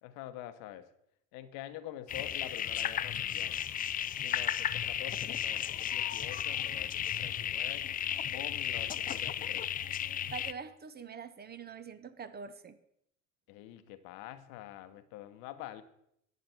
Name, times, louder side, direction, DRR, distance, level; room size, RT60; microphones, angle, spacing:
voice 1, 0.0-0.9 1.3-3.6 4.2-7.8 8.3-9.7 13.5-15.8, left 13 dB, 55° left, 12 dB, 1.0 m, -46 dB
sound 1, 2.1-10.5, left 10 dB, 25° left, 0.4 m, -34 dB
voice 2, 10.3-12.8, right 6 dB, 25° right, 12 dB, 0.8 m, -44 dB
11.0 x 8.7 x 4.4 m, 0.76 s
hypercardioid pair, 70°, 39 cm